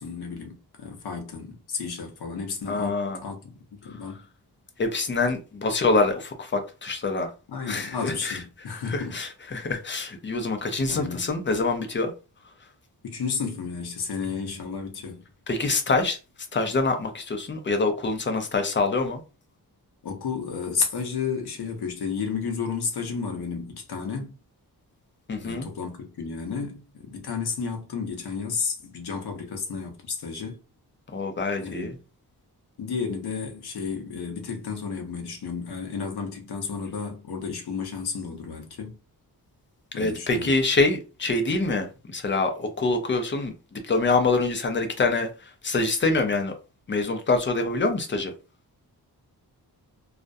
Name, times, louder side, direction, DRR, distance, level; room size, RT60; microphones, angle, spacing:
voice 1, 0.0-4.2 7.5-9.2 10.9-11.3 13.0-15.3 20.0-24.4 25.4-30.6 31.6-32.0 32.8-39.0 39.9-40.5, left 5 dB, 70° left, 0.7 m, -32 dB
voice 2, 2.7-3.2 4.8-7.3 7.7-8.4 8.9-12.1 15.5-16.2 16.5-19.2 25.3-25.7 31.1-31.9 40.0-45.3 45.6-46.5 46.9-48.3, left 3 dB, 30° left, 0.4 m, -25 dB
2.4 x 2.1 x 2.5 m
wide cardioid pair, 145°, 39 cm